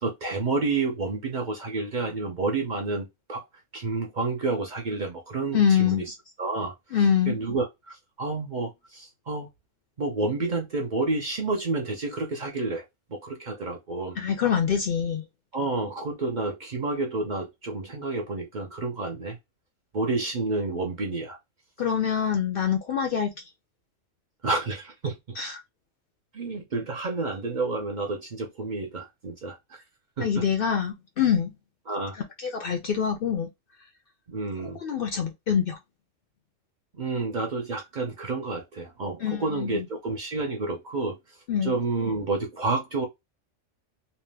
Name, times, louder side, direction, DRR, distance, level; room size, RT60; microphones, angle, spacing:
voice 1, 0.0-3.4 3.7-6.7 7.3-9.5 10.0-12.8 13.1-14.2 15.5-19.4 19.9-21.4 24.4-25.4 26.3-29.8 30.2-30.5 31.9-32.2 34.3-34.8 36.9-41.2 41.6-43.1, right 3 dB, 50° right, 0.7 m, -30 dB
voice 2, 5.5-6.0 6.9-7.3 14.2-15.2 21.8-23.3 25.4-25.6 30.2-31.5 32.2-33.5 34.6-35.8 39.2-39.9 41.5-41.7, left 8 dB, 60° left, 0.6 m, -25 dB
2.7 x 2.1 x 3.2 m
omnidirectional pair, 1.3 m